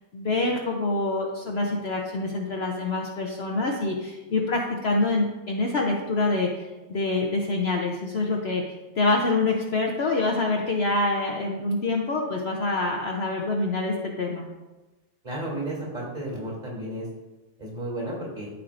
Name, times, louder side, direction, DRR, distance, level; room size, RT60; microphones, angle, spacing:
voice 1, 0.1-8.6 9.0-14.5, left 2 dB, 55° left, 0 dB, 0.9 m, -26 dB
voice 2, 15.2-17.1 17.6-18.5, right 1 dB, 30° right, -3 dB, 2.8 m, -33 dB
13.0 x 4.6 x 2.6 m, 1.1 s
omnidirectional pair, 1.5 m